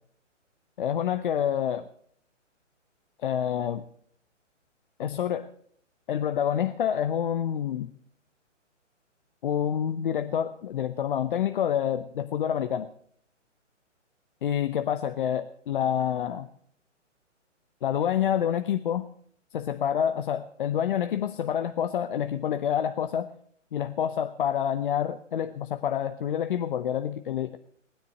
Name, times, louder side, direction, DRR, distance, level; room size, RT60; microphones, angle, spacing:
voice 1, 0.8-1.8 3.2-3.8 5.0-5.5 6.1-7.9 9.4-12.9 14.4-16.5 17.8-19.1 19.5-23.3 23.7-27.6, left 9 dB, 45° left, 10 dB, 0.8 m, -27 dB
19.0 x 10.0 x 6.6 m, 0.62 s
figure-of-eight pair, 135°, 37 cm